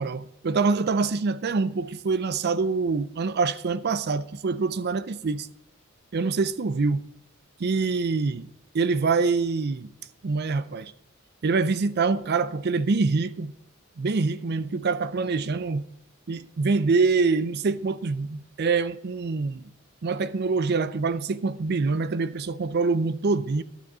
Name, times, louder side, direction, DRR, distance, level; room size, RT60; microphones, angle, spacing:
voice 1, 0.0-5.5 6.1-7.1 7.6-8.5 8.7-9.9 10.2-10.9 11.4-13.5 14.0-15.8 16.3-19.7 20.0-23.6, right 4 dB, 55° right, 0.5 m, -25 dB
11.5 x 6.9 x 6.1 m
head